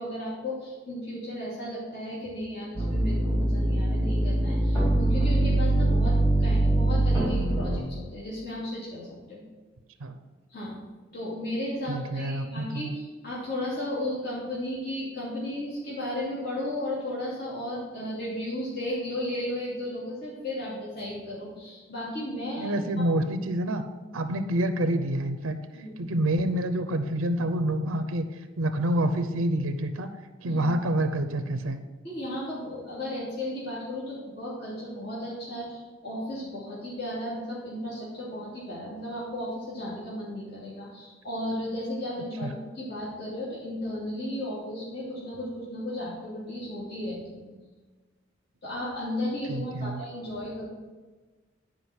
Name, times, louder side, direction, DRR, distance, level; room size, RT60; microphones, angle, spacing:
voice 1, 0.0-9.4 10.5-10.8 11.1-23.1 25.7-26.0 30.5-30.6 32.0-47.5 48.6-50.6, left 1 dB, 50° left, -8 dB, 2.7 m, -34 dB
sound 1, 2.7-7.8, right 1 dB, 20° left, 2.6 m, -23 dB
voice 2, 11.9-13.0 22.6-23.8 24.1-25.6 26.0-28.2 28.6-30.1 30.4-31.8 42.4-42.5 49.5-50.0, right 1 dB, 90° right, 9 dB, 0.6 m, -27 dB
9.6 x 5.0 x 6.1 m, 1.3 s
head